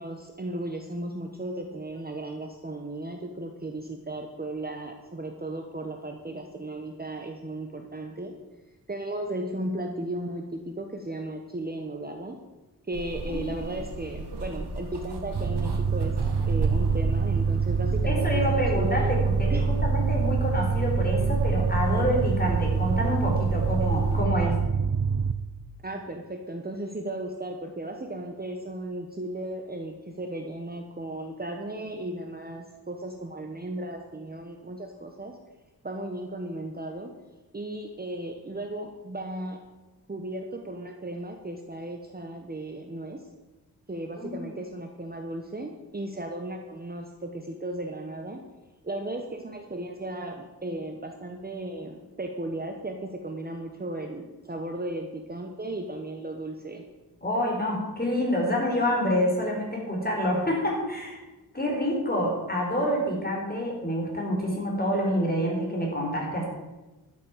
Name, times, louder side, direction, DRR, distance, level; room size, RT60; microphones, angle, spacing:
voice 1, 0.0-8.3 8.9-12.4 12.9-19.2 19.5-19.6 25.8-35.4 35.8-37.1 37.5-39.6 40.1-43.2 43.9-48.4 48.8-56.8, right 1 dB, 25° right, 3 dB, 1.2 m, -35 dB
sound 1, 12.9-24.2, right 2 dB, 80° right, 2.1 m, -33 dB
sound 2, 15.3-25.3, right 5 dB, 45° right, 0.7 m, -26 dB
voice 2, 18.1-24.6 44.2-44.5 57.2-61.2 61.5-66.4, equal, 25° left, -1 dB, 4.7 m, -27 dB
12.5 x 7.6 x 7.4 m, 1.1 s
wide cardioid pair, 85°, 40 cm